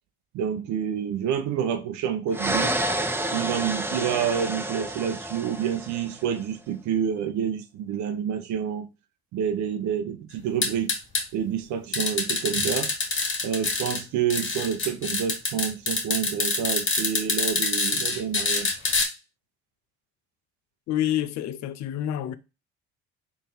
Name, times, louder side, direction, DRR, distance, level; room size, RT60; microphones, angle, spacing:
voice 1, 0.3-2.7 3.3-8.9 9.3-11.0 11.3-12.9 13.4-18.7, right 8 dB, 65° right, 0.8 m, -28 dB
sound 1, 2.3-6.2, right 1 dB, 5° right, 0.5 m, -29 dB
sound 2, 10.6-11.2 11.9-14.0 14.3-19.1, left 3 dB, 40° left, 1.6 m, -25 dB
voice 2, 20.9-22.3, left 11 dB, 60° left, 0.5 m, -28 dB
3.9 x 2.6 x 4.0 m
hypercardioid pair, 65°, 31 cm